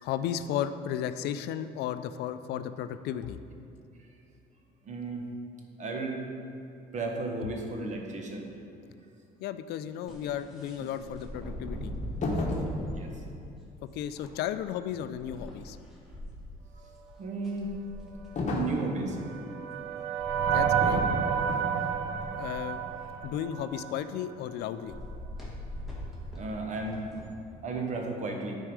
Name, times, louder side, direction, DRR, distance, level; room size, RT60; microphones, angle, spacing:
voice 1, 0.0-3.4 9.4-11.9 12.3-12.6 13.9-15.8 20.5-21.0 22.4-22.8 23.2-25.0 25.5-25.6, left 10 dB, 75° left, 11 dB, 0.4 m, -34 dB
voice 2, 4.8-5.2 5.8-6.2 6.9-8.5 13.0-13.1 17.2-17.7 18.4-19.2 26.4-27.2 27.6-28.6, right 3 dB, 45° right, 2 dB, 1.2 m, -34 dB
sound 1, 10.1-13.0 14.0-16.2 16.9-17.0 17.2-18.7 19.8-19.9 20.1-23.4 24.8-27.3, equal, ahead, 1.7 m, -40 dB
sound 2, 12.2-12.8 18.4-18.9 20.8-21.1 21.5-21.8, left 2 dB, 45° left, 1.2 m, -31 dB
sound 3, 18.8-24.1, right 8 dB, 80° right, 0.5 m, -30 dB
9.8 x 4.6 x 4.8 m, 2.6 s
cardioid pair, 110°, 17 cm